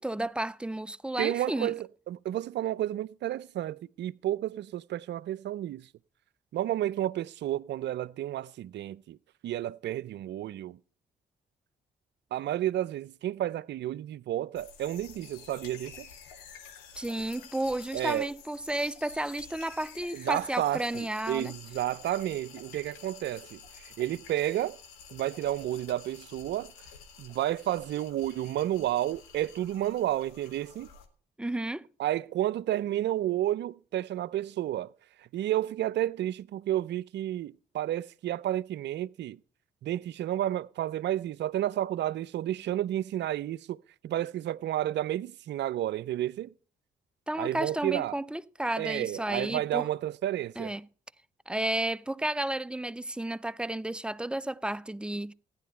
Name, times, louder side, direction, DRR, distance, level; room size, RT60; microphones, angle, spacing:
voice 1, 0.0-1.7 17.0-21.5 31.4-31.9 47.3-49.9 50.6-50.9 51.5-55.3, right 1 dB, 5° right, 0.5 m, -32 dB
voice 2, 1.2-5.9 6.5-9.2 9.4-10.8 12.3-16.1 17.9-18.3 20.1-24.8 25.1-26.7 27.2-30.9 32.0-34.9 35.3-39.4 39.8-43.8 44.0-46.5 47.4-48.1 48.8-50.7, right 13 dB, 60° right, 0.5 m, -31 dB
sound 1, 14.5-31.1, left 6 dB, 85° left, 1.2 m, -50 dB
15.0 x 10.0 x 4.4 m
hypercardioid pair, 45°, 20 cm